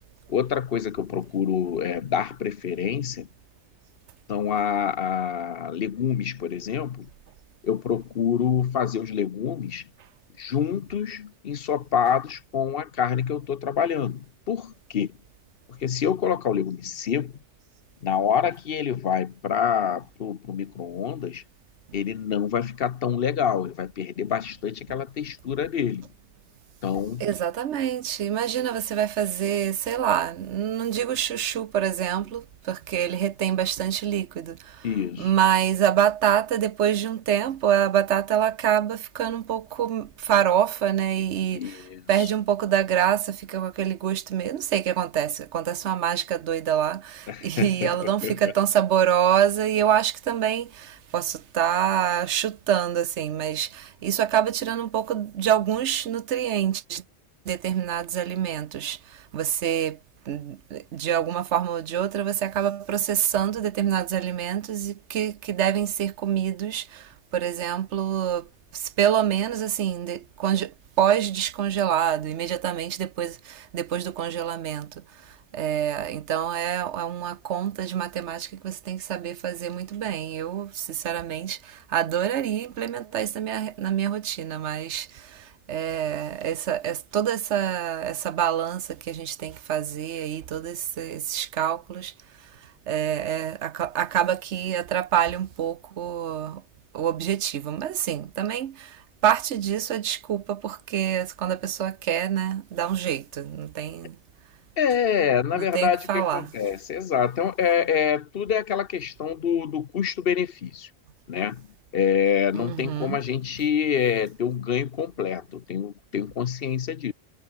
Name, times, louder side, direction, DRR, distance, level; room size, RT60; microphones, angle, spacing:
voice 1, 0.3-3.3 4.3-7.1 7.6-9.9 10.4-15.1 15.7-17.3 18.0-21.4 21.9-26.1 26.8-27.3 34.8-35.3 41.5-42.0 47.3-47.9 48.2-48.3 104.8-110.9 111.3-111.7 111.9-117.1, left 8 dB, 60° left, 0.9 m, -26 dB
voice 2, 27.2-34.9 35.2-57.0 57.4-60.0 60.3-96.6 96.9-104.2 105.5-106.5 112.5-113.2, right 10 dB, 85° right, 1.1 m, -26 dB
omnidirectional pair, 1.2 m